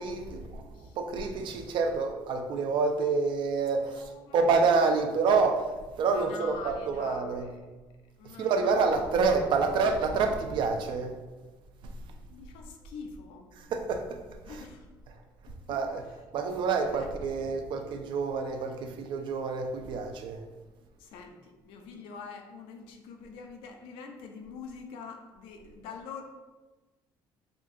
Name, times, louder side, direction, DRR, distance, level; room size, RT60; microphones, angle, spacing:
voice 1, 0.0-7.5 8.2-11.1 11.8-11.9 13.6-14.2 14.5-14.7 15.7-16.1 16.3-20.4, right 4 dB, 65° right, 5 dB, 0.4 m, -28 dB
voice 2, 3.9-4.6 6.1-7.7 8.2-9.0 12.2-13.5 14.5-14.8 15.7-15.8 16.9-17.1 21.0-26.2, left 5 dB, 90° left, 4 dB, 0.4 m, -45 dB
3.7 x 2.7 x 2.5 m, 1.2 s
cardioid pair, 100°, 9 cm